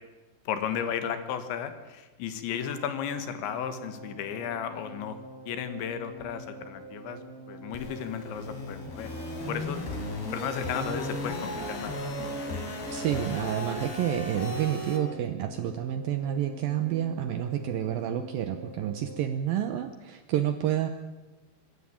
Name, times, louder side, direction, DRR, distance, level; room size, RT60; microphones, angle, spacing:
voice 1, 0.5-5.2 5.5-7.2 7.5-9.1 9.5-9.8 10.3-12.2, left 8 dB, 80° left, 10 dB, 4.0 m, -34 dB
sound 1, 2.5-19.3, right 3 dB, 60° right, 6.8 m, -46 dB
sound 2, 7.7-15.0, left 1 dB, 60° left, 5.3 m, -35 dB
voice 2, 12.9-20.9, right 11 dB, 75° right, 10 dB, 2.1 m, -29 dB
25.0 x 13.5 x 8.8 m, 1.2 s
omnidirectional pair, 5.2 m